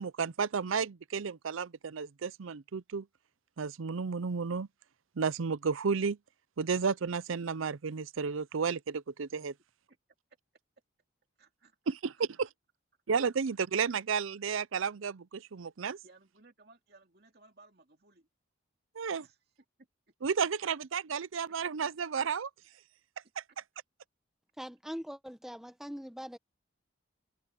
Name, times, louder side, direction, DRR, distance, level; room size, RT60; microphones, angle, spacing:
voice 1, 0.0-3.1 3.6-4.7 5.2-6.2 6.6-9.5 11.9-12.5 13.1-16.0 19.0-19.2 20.2-22.5, right 5 dB, 80° right, 0.5 m, -32 dB
voice 2, 11.4-12.2 16.0-18.3 19.2-19.4 21.5-21.6 23.5-23.6, right 3 dB, 50° right, 2.6 m, -61 dB
voice 3, 24.6-26.4, equal, ahead, 0.9 m, -42 dB
head